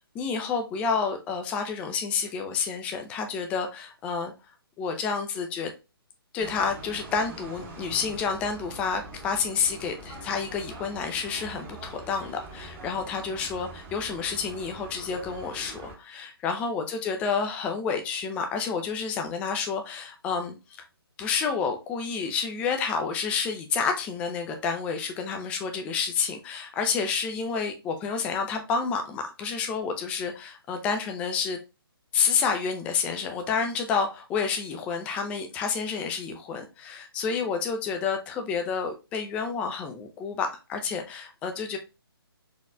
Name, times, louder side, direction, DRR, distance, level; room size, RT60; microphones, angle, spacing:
voice 1, 0.1-4.3 4.8-5.7 6.3-20.6 21.2-31.6 32.1-41.8, left 5 dB, 10° left, 0.3 m, -29 dB
sound 1, 6.4-16.0, right 2 dB, 25° right, 0.8 m, -43 dB
4.3 x 3.0 x 2.4 m
figure-of-eight pair, 135°, 13 cm